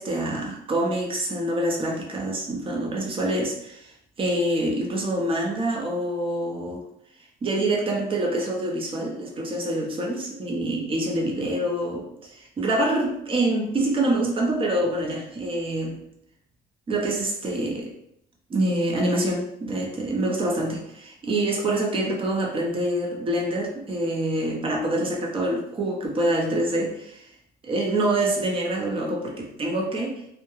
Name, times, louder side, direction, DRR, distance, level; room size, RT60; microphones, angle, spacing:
voice 1, 0.0-3.9 4.2-6.9 7.4-16.0 16.9-17.9 18.5-27.3 27.6-30.2, right 1 dB, 30° right, 0 dB, 0.6 m, -26 dB
2.3 x 2.1 x 3.0 m, 0.74 s
cardioid pair, 110°, 17 cm